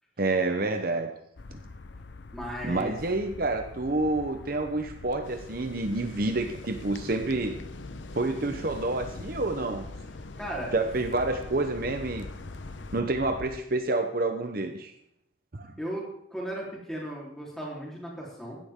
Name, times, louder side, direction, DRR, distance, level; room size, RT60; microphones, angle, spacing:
voice 1, 0.2-1.1 1.5-1.6 2.6-7.6 8.1-9.9 10.7-12.3 12.9-14.9 15.5-15.7, right 2 dB, 50° right, 6 dB, 0.9 m, -28 dB
sound 1, 1.4-13.6, left 3 dB, 70° left, 0.7 m, -44 dB
voice 2, 2.3-2.9 10.4-10.7 15.8-18.6, right 1 dB, 5° left, -4 dB, 3.7 m, -36 dB
sound 2, 5.2-13.0, left 2 dB, 85° left, 1.0 m, -45 dB
16.0 x 11.5 x 3.7 m, 0.76 s
head